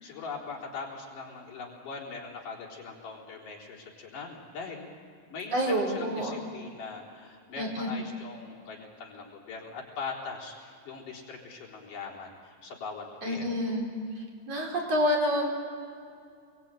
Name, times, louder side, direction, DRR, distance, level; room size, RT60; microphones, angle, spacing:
voice 1, 0.0-4.9 5.3-13.8, left 4 dB, 70° left, -3 dB, 5.5 m, -41 dB
voice 2, 5.5-6.4 7.6-7.9 13.2-13.9 14.5-15.5, equal, 45° right, -1 dB, 5.6 m, -28 dB
28.0 x 23.0 x 9.1 m, 2.3 s
omnidirectional pair, 3.9 m